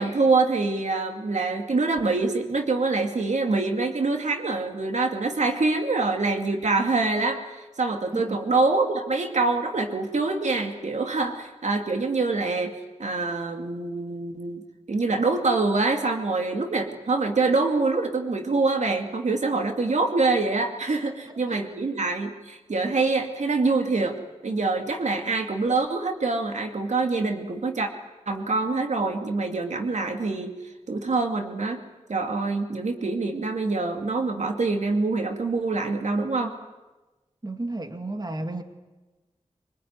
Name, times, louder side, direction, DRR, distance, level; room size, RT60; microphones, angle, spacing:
voice 1, 0.0-14.6 14.9-24.2 24.4-27.9 28.3-30.5 30.9-31.8 32.1-36.5, right 3 dB, 85° right, 2.3 m, -25 dB
voice 2, 21.0-21.6 37.4-38.6, right 2 dB, 35° right, 2.2 m, -33 dB
25.0 x 20.0 x 9.6 m
wide cardioid pair, 50°, 12 cm